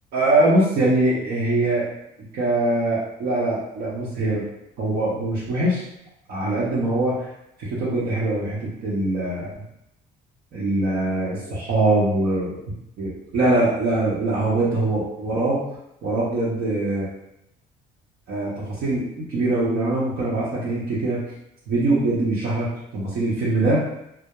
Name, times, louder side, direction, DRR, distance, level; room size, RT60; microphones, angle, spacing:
voice 1, 0.1-1.9 2.3-4.4 4.8-5.8 6.3-7.3 7.6-9.5 10.5-12.6 13.0-15.6 16.0-17.1 18.3-21.2 21.7-23.8, right 2 dB, 70° right, -8 dB, 0.8 m, -22 dB
2.3 x 2.0 x 2.9 m, 0.80 s
cardioid pair, 110°, 17 cm